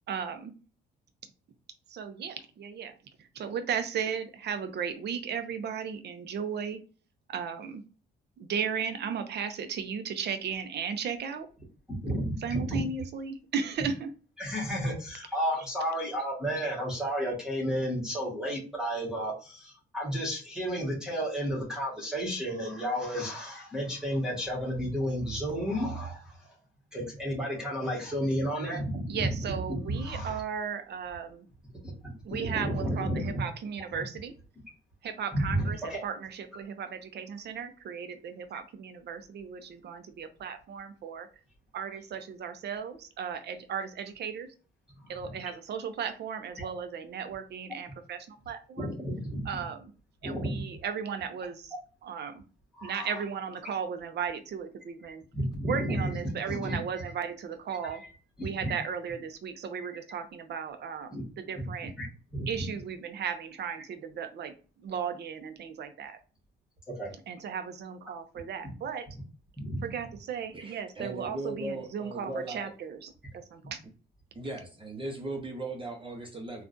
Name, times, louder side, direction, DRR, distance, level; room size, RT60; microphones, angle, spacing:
voice 1, 0.1-0.5 1.9-2.9 3.2-6.8 7.3-7.8 8.4-11.5 12.4-14.1 29.1-31.5 32.2-34.3 35.0-41.3 41.7-44.5 45.1-48.9 49.4-49.9 50.2-51.7 52.0-52.4 52.8-55.2 55.7-58.0 58.4-61.9 62.5-64.5 64.8-66.2 67.3-69.1 69.8-73.8, right 7 dB, 60° right, 0.6 m, -35 dB
voice 2, 11.9-12.8 14.4-26.4 26.9-30.4 31.8-31.9 32.5-33.4 33.9-34.0 35.3-36.0 44.9-45.3 46.6-46.7 48.8-49.5 50.2-50.6 52.7-53.2 55.3-56.8 57.9-58.1 58.4-58.9 61.1-61.2 61.5-61.6 62.0-62.5 67.0-67.1 69.6-69.8, equal, 5° right, 1.5 m, -32 dB
voice 3, 70.5-72.7 74.3-76.6, right 2 dB, 25° right, 0.8 m, -38 dB
3.6 x 2.4 x 2.6 m
cardioid pair, 90°, 20 cm